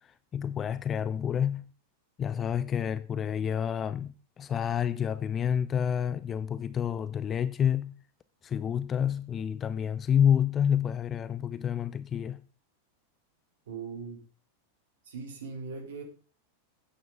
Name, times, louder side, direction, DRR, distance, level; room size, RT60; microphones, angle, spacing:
voice 1, 0.0-1.6 2.2-8.0 8.4-12.4, left 8 dB, 25° left, 0.4 m, -29 dB
voice 2, 13.7-14.2 15.0-16.0, right 5 dB, 60° right, 3.0 m, -39 dB
12.5 x 9.3 x 3.7 m
figure-of-eight pair, 90°, 0 cm